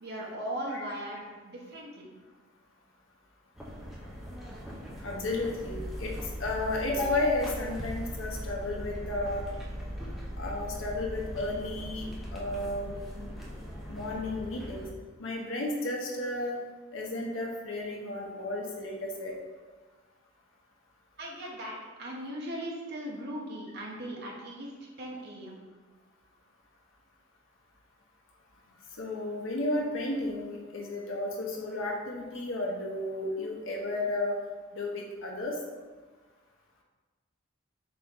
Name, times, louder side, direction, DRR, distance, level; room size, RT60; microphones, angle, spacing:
voice 1, 0.0-2.1 21.2-24.7 25.0-25.6, right 1 dB, 50° right, -2 dB, 0.7 m, -38 dB
sound 1, 3.6-14.9, equal, ahead, 0.5 m, -40 dB
voice 2, 5.0-9.4 10.4-13.3 13.9-14.9 15.2-16.6 16.9-19.3 29.0-34.4 34.7-35.6, left 2 dB, 65° left, -1 dB, 0.8 m, -33 dB
4.2 x 3.0 x 3.6 m, 1.4 s
head